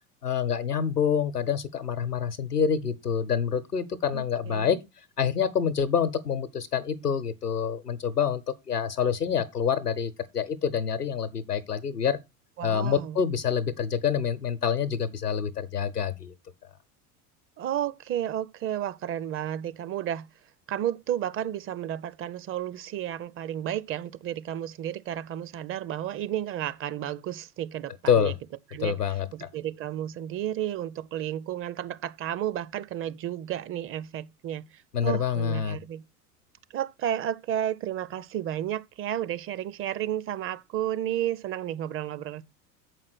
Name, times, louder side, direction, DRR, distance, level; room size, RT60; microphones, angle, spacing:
voice 1, 0.2-4.8 5.2-12.2 12.6-16.3 16.6-16.7 28.1-28.4 28.8-29.5 34.9-35.8, left 7 dB, 90° left, 0.8 m, -27 dB
voice 2, 4.1-4.8 12.6-13.2 17.6-20.3 20.7-28.3 28.7-36.0 36.7-42.4, right 11 dB, 30° right, 0.6 m, -32 dB
7.5 x 5.0 x 5.9 m
figure-of-eight pair, 75°, 46 cm